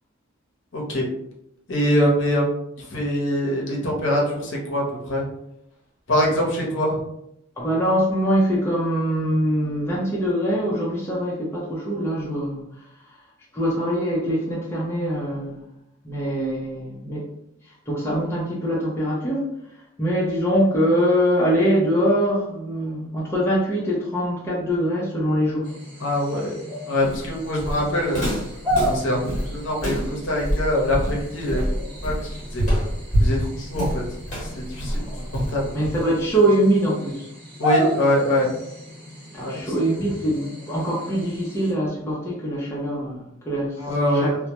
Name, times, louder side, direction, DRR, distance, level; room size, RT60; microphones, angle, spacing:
voice 1, 0.7-1.0 1.7-2.4 2.8-5.2 6.1-7.0 26.0-28.4 28.8-31.7 32.0-32.6 33.2-34.0 34.6-35.7 37.6-38.5 39.3-39.6 43.8-44.3, left 1 dB, 65° left, -2 dB, 0.7 m, -24 dB
voice 2, 7.6-12.7 13.5-15.6 16.0-17.3 17.9-19.5 20.0-25.7 35.1-35.3 35.7-37.3 39.3-43.9 44.1-44.4, equal, 10° left, -6 dB, 0.5 m, -23 dB
sound 1, 25.6-41.7, equal, 25° right, 1.1 m, -33 dB
Walk footsteps, 27.0-36.3, equal, 35° left, 1.0 m, -26 dB
2.1 x 2.1 x 2.8 m, 0.79 s
head